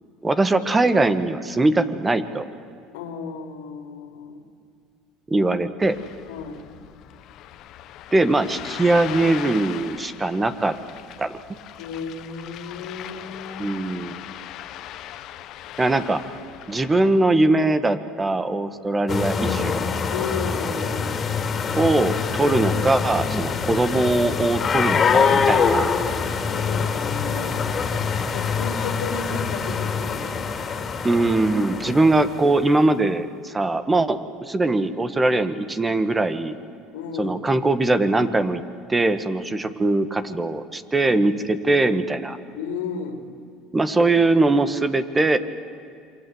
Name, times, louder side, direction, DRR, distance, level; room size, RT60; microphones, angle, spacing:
voice 1, 0.2-2.5 5.3-6.0 8.1-10.8 11.2-11.4 13.6-14.2 15.8-16.2 16.7-19.8 21.7-25.9 31.0-36.6 37.2-38.6 38.9-42.4 43.7-45.4, right 2 dB, 15° right, 11 dB, 1.6 m, -21 dB
voice 2, 2.9-4.4 6.3-6.6 11.8-13.8 20.1-21.2 26.4-30.3 36.9-37.4 39.6-39.7 42.5-43.2, left 5 dB, 90° left, 5 dB, 3.1 m, -33 dB
Ocean, 5.8-17.1, left 12 dB, 60° left, 1.2 m, -39 dB
sound 1, 19.1-32.6, left 5 dB, 35° left, 3.1 m, -24 dB
28.0 x 24.5 x 8.0 m, 2.4 s
supercardioid pair, 100°, 0 cm